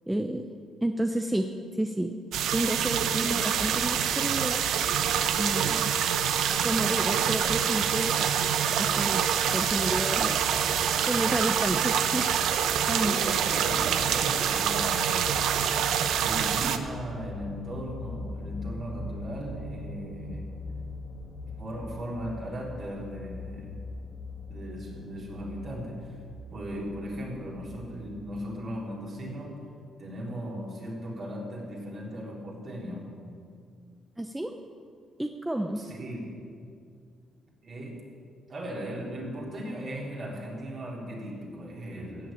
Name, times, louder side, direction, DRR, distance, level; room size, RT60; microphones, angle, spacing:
voice 1, 0.1-0.4 0.8-1.5 1.8-2.1 2.5-4.6 5.4-5.9 6.6-8.2 8.7-9.2 9.5-10.4 11.1-13.2 34.2-34.5 35.2-35.8, right 1 dB, 10° right, 5 dB, 0.8 m, -30 dB
sound 1, 2.3-16.8, right 8 dB, 80° right, 0.8 m, -26 dB
sound 2, 9.5-28.1, left 1 dB, 75° left, 2.5 m, -42 dB
voice 2, 13.0-15.4 16.2-20.5 21.4-23.8 24.4-26.1 26.5-29.5 30.0-33.1 35.8-36.4 37.6-38.1 38.5-42.3, equal, 45° right, -3 dB, 3.8 m, -37 dB
15.5 x 6.9 x 8.8 m, 2.3 s
cardioid pair, 90°, 0 cm